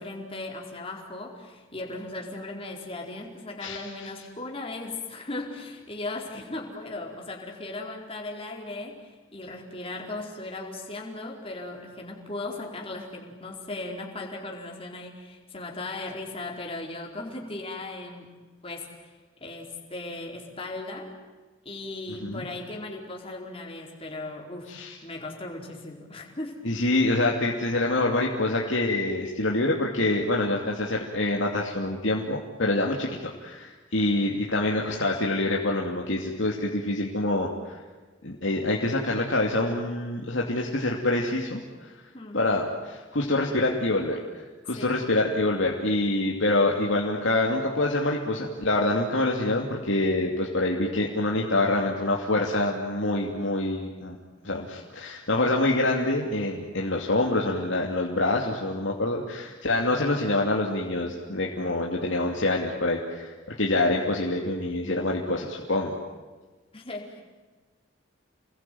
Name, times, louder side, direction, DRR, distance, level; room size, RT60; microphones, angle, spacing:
voice 1, 0.0-18.3 18.6-19.1 19.4-21.1 21.6-24.7 25.0-26.6 42.1-42.4 44.7-44.9 66.7-67.2, left 2 dB, 30° left, 0 dB, 4.6 m, -37 dB
voice 2, 3.6-3.9 22.2-22.4 24.7-25.0 26.6-37.8 38.2-41.9 42.3-54.2 54.4-65.9, left 2 dB, 65° left, -1 dB, 2.9 m, -26 dB
29.5 x 21.5 x 9.4 m, 1.3 s
head